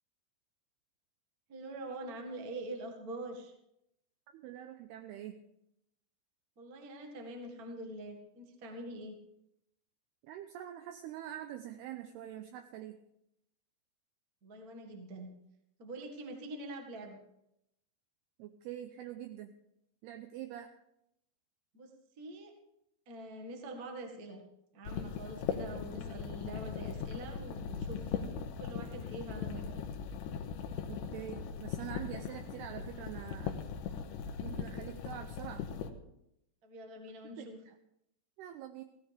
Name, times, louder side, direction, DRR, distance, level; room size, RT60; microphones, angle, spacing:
voice 1, 1.5-3.5 6.6-9.2 14.4-15.3 15.8-17.2 21.7-21.9 22.2-22.5 23.0-24.4 24.7-28.2 28.6-29.7 36.6-37.6, right 1 dB, 60° right, 3 dB, 0.9 m, -44 dB
voice 2, 4.3-5.4 10.2-13.0 18.4-19.5 20.0-20.7 30.9-33.6 34.4-35.6 37.4-37.5 38.4-38.8, right 11 dB, 80° right, 7 dB, 2.5 m, -45 dB
sound 1, 24.9-35.9, left 7 dB, 85° left, 3.3 m, -39 dB
17.0 x 16.0 x 3.5 m, 0.80 s
omnidirectional pair, 5.1 m